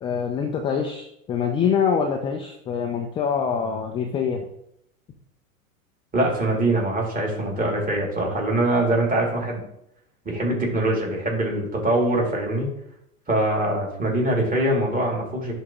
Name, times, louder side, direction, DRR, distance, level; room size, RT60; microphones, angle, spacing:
voice 1, 0.0-4.4, left 6 dB, 15° left, 3 dB, 0.3 m, -25 dB
voice 2, 6.1-9.6 10.2-12.7 13.3-15.6, right 1 dB, 20° right, -2 dB, 2.5 m, -23 dB
10.5 x 3.6 x 2.9 m, 0.75 s
hypercardioid pair, 100°, 43 cm